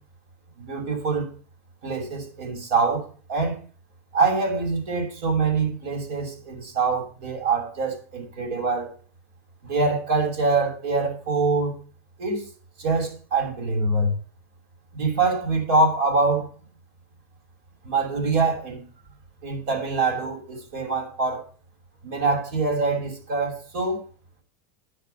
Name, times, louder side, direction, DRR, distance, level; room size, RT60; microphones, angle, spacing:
voice 1, 0.6-1.3 1.8-3.6 4.1-8.9 9.6-11.7 12.2-12.4 12.8-14.1 14.9-16.5 17.8-18.8 19.4-21.4 22.0-24.0, right 3 dB, 65° right, 6.7 m, -24 dB
10.5 x 7.0 x 8.5 m
supercardioid pair, 145°, 8 cm